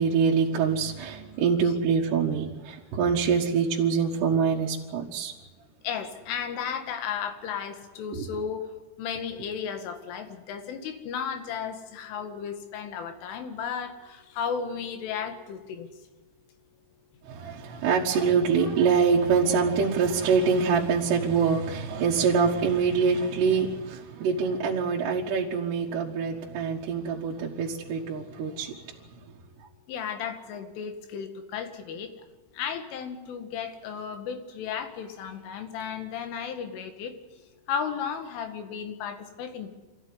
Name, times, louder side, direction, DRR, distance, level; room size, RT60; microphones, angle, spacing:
voice 1, 0.0-5.3 8.1-8.3 17.2-28.9, right 5 dB, 65° right, 3.5 m, -25 dB
voice 2, 5.8-8.7 9.0-15.9 29.9-32.1 32.5-37.1 37.7-39.7, left 7 dB, 85° left, 4.5 m, -34 dB
25.5 x 15.0 x 9.8 m
omnidirectional pair, 5.5 m